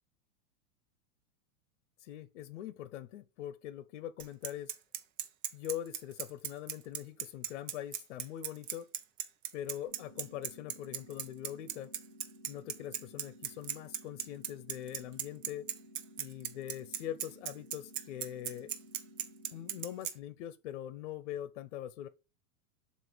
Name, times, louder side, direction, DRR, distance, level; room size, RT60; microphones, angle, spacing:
voice 1, 2.0-4.7 5.5-8.9 9.5-11.9 12.5-15.7 16.2-18.7 19.5-22.1, left 11 dB, 55° left, 0.8 m, -42 dB
Bicycle, 4.2-20.1, right 10 dB, 60° right, 0.9 m, -37 dB
sound 1, 9.8-19.9, equal, ahead, 1.7 m, -56 dB
7.5 x 2.6 x 5.0 m
supercardioid pair, 175°, 43 cm